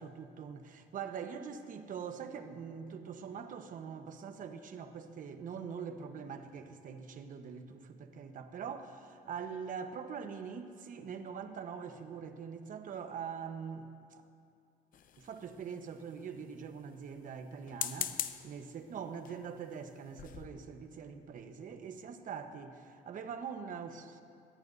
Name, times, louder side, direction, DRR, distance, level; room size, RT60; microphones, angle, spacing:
voice 1, 0.0-14.2 15.2-24.2, right 6 dB, 50° right, 7 dB, 1.1 m, -43 dB
sound 1, 14.9-15.7 17.6-18.5 19.2-19.5 19.9-20.0 20.2-20.5, left 10 dB, 55° left, 0.8 m, -39 dB
22.0 x 17.5 x 2.7 m, 2.5 s
cardioid pair, 110°, 17 cm